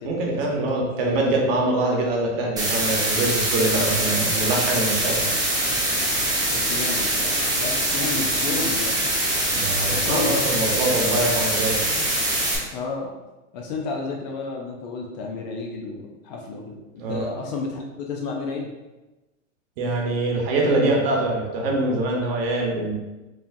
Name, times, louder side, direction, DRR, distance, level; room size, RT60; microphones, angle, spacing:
voice 1, 0.0-5.2 9.5-11.9 17.0-17.2 19.8-22.9, right 2 dB, 45° right, -1 dB, 1.1 m, -24 dB
voice 2, 0.6-1.3 6.1-6.2 6.5-9.1 9.9-10.4 12.7-13.1 13.5-18.7, left 3 dB, 35° left, 0 dB, 0.4 m, -32 dB
sound 1, 2.6-12.6, right 1 dB, 10° right, 0.7 m, -23 dB
4.8 x 2.7 x 2.6 m, 1.1 s
hypercardioid pair, 135°, 39 cm